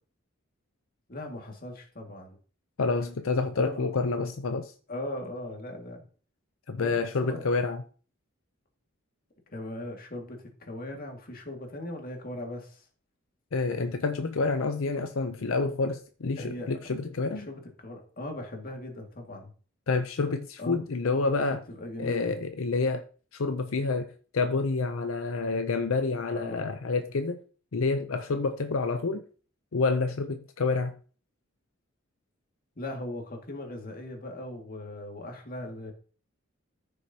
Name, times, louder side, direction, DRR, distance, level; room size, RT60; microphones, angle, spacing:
voice 1, 1.1-2.4 3.5-3.9 4.9-6.0 6.7-7.4 9.5-12.8 16.4-16.7 17.3-19.5 20.6-20.8 21.7-22.4 26.3-26.8 32.8-35.9, left 1 dB, 45° left, 2.1 m, -39 dB
voice 2, 2.8-4.7 6.7-7.8 13.5-17.5 19.9-21.6 22.0-23.0 23.3-27.4 27.7-29.2 29.7-31.0, left 3 dB, 85° left, 0.6 m, -28 dB
14.0 x 6.4 x 2.9 m
head